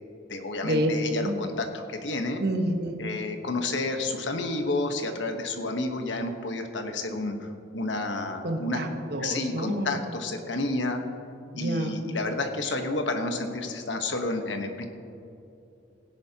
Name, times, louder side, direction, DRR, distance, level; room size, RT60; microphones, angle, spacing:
voice 1, 0.3-2.4 3.0-8.8 9.2-11.0 11.6-14.9, left 2 dB, 85° left, 5 dB, 1.2 m, -30 dB
voice 2, 2.4-3.0 8.4-10.0 11.5-12.0, right 1 dB, 60° right, 4 dB, 1.2 m, -28 dB
17.0 x 10.5 x 2.9 m, 2.7 s
head